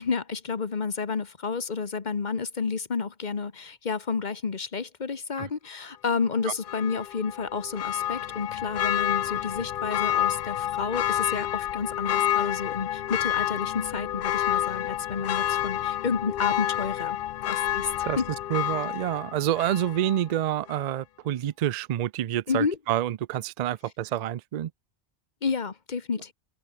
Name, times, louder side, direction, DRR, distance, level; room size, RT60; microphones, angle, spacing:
voice 1, 0.0-17.2 17.5-18.3 22.5-22.8 25.4-26.3, left 5 dB, 45° left, 1.3 m, -30 dB
Church bell, 6.6-20.3 20.7-20.8, left 12 dB, 60° left, 0.7 m, -29 dB
voice 2, 18.5-24.7, right 12 dB, 55° right, 0.4 m, -28 dB
omnidirectional pair, 1.1 m